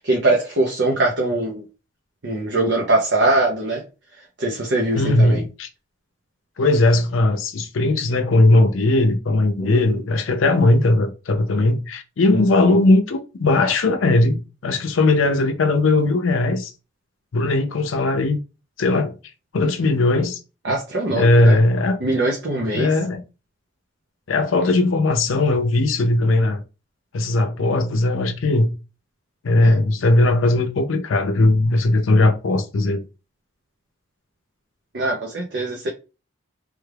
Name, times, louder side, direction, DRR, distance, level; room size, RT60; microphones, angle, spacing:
voice 1, 0.0-1.6 2.2-3.8 4.4-5.4 9.6-9.8 20.6-21.6 22.0-22.9 29.6-29.8 34.9-35.9, right 2 dB, 60° right, 0.6 m, -22 dB
voice 2, 5.0-5.7 6.6-16.7 17.3-18.4 18.8-19.2 19.5-20.4 21.1-22.0 22.7-23.2 24.3-26.6 27.1-28.7 29.4-33.0, left 2 dB, 80° left, 0.5 m, -18 dB
3.4 x 2.3 x 3.3 m
head